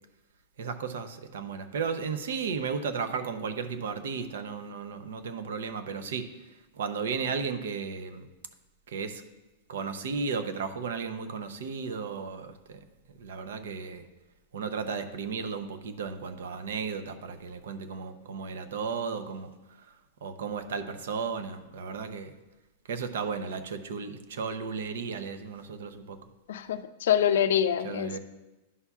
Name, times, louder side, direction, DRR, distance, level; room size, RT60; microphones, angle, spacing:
voice 1, 0.6-6.3 6.8-8.3 8.9-9.2 9.7-12.8 13.2-14.0 14.5-19.5 20.2-22.3 22.9-26.2 27.8-28.2, right 5 dB, 75° right, 10 dB, 0.7 m, -34 dB
voice 2, 26.5-28.2, left 9 dB, 70° left, 11 dB, 0.4 m, -25 dB
11.0 x 5.5 x 2.4 m, 1.1 s
supercardioid pair, 175°, 0 cm